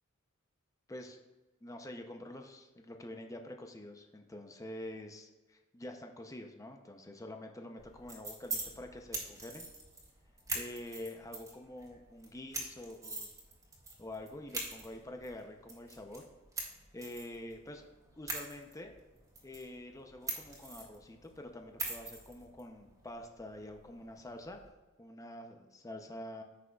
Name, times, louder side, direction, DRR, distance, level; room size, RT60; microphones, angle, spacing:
voice 1, 0.9-1.2 1.6-9.7 10.5-13.3 14.0-16.3 16.9-17.9 18.2-18.9 19.4-24.6 25.0-26.4, left 1 dB, 15° left, 4 dB, 0.6 m, -47 dB
sound 1, 7.8-24.7, right 2 dB, 15° right, 2.0 m, -45 dB
14.5 x 6.1 x 2.3 m, 1.2 s
head